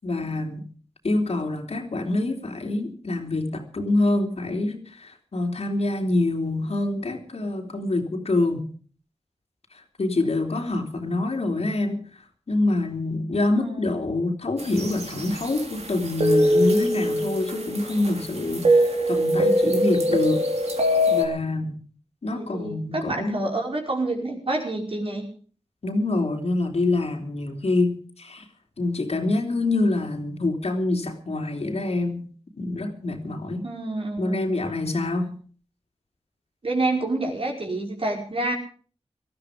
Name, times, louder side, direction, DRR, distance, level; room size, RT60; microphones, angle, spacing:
voice 1, 0.0-0.7 1.0-8.7 10.0-12.0 12.5-20.5 21.1-21.8 22.2-23.4 25.8-28.4 28.8-32.3 32.5-33.6 34.2-35.4, left 2 dB, 65° left, 3.1 m, -26 dB
sound 1, 14.6-21.2, equal, 70° right, 3.2 m, -23 dB
voice 2, 22.3-25.2 33.6-34.5 36.6-38.5, right 2 dB, 55° right, 5.0 m, -28 dB
19.0 x 13.5 x 5.1 m
wide cardioid pair, 60°, 11 cm